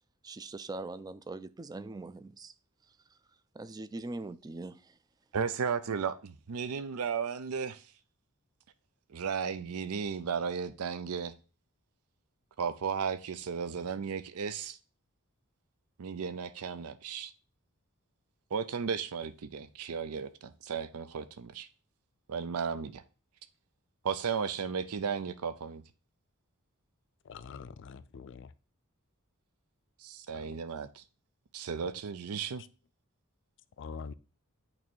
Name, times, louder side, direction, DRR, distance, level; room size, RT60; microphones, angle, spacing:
voice 1, 0.2-2.5 3.5-5.0, right 2 dB, 15° right, 0.3 m, -42 dB
voice 2, 5.3-7.9 9.1-11.3 12.6-14.8 16.0-17.3 18.5-21.7 22.3-23.0 24.0-25.8 30.0-31.0 31.5-32.6, right 6 dB, 80° right, 0.5 m, -35 dB
voice 3, 27.2-28.5 30.3-30.5 33.8-34.1, left 5 dB, 55° left, 0.4 m, -44 dB
8.7 x 3.1 x 4.4 m
head